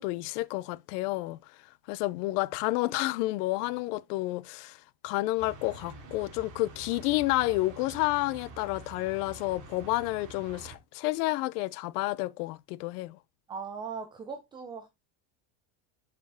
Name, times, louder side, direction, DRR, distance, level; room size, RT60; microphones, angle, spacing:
voice 1, 0.0-1.4 1.9-4.8 5.0-13.2, left 19 dB, 85° left, 0.6 m, -30 dB
sound 1, 5.4-10.8, right 2 dB, 40° right, 2.3 m, -47 dB
voice 2, 13.5-14.9, right 5 dB, 10° right, 0.3 m, -39 dB
6.8 x 5.3 x 3.4 m
cardioid pair, 165°, 45 cm